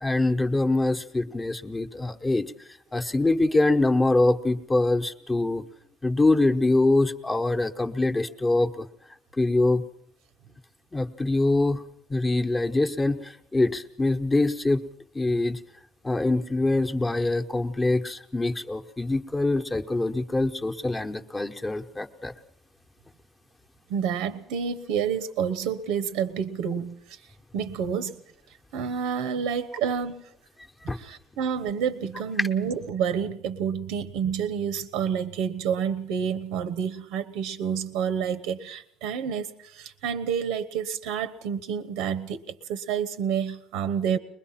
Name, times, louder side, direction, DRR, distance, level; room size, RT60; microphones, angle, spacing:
voice 1, 0.0-2.5 2.9-5.6 6.0-8.9 9.4-9.8 10.9-11.8 12.1-14.8 15.1-15.6 16.0-22.3 30.9-31.0 32.4-32.5, left 2 dB, 10° left, 5 dB, 1.0 m, -24 dB
voice 2, 23.9-27.2 27.5-28.2 28.7-30.2 31.0-42.4 42.7-44.2, right 7 dB, 90° right, 14 dB, 1.0 m, -29 dB
23.0 x 21.0 x 5.8 m, 0.69 s
cardioid pair, 160°, 0 cm